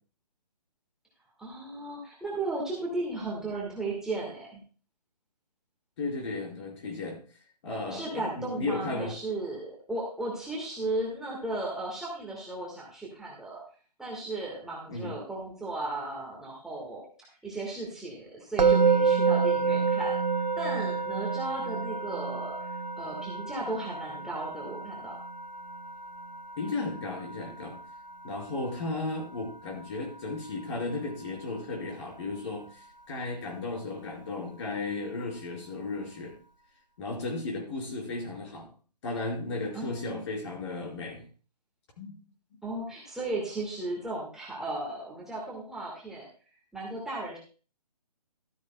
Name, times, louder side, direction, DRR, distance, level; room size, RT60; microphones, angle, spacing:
voice 1, 1.4-4.6 7.9-13.6 14.0-20.2 20.6-22.6 23.0-25.2 39.7-40.2 42.6-46.3 46.7-47.4, right 2 dB, 5° right, -5 dB, 1.5 m, -35 dB
voice 2, 6.0-7.2 7.6-9.1 14.9-15.2 26.6-27.8 28.2-36.3 37.0-38.7 39.0-41.3 42.0-42.1, left 3 dB, 40° left, -1 dB, 4.5 m, -35 dB
Musical instrument, 18.6-29.7, right 5 dB, 90° right, 0.9 m, -29 dB
13.5 x 12.5 x 2.2 m, 0.39 s
figure-of-eight pair, 150°, 21 cm